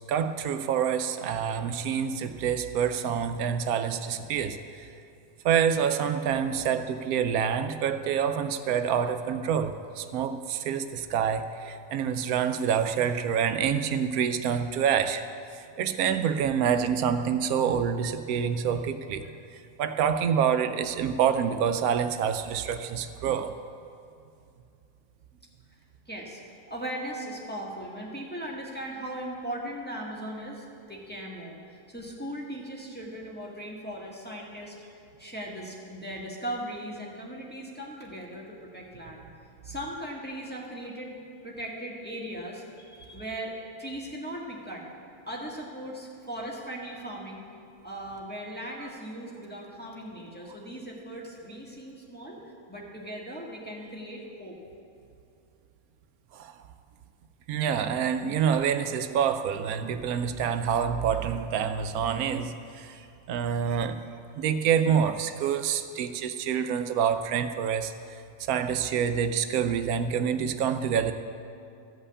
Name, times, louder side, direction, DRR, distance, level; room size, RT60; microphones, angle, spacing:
voice 1, 0.1-4.9 5.4-15.3 15.5-23.6 48.8-48.9 56.3-56.6 57.5-64.0 64.3-71.1, right 8 dB, 90° right, 9 dB, 1.1 m, -27 dB
voice 2, 26.1-26.4 26.7-34.9 35.2-39.3 39.6-41.1 41.4-44.8 45.3-47.5 47.8-54.6 62.9-63.0, right 1 dB, 5° left, -4 dB, 1.6 m, -38 dB
14.0 x 5.5 x 8.3 m, 2.5 s
omnidirectional pair, 1.5 m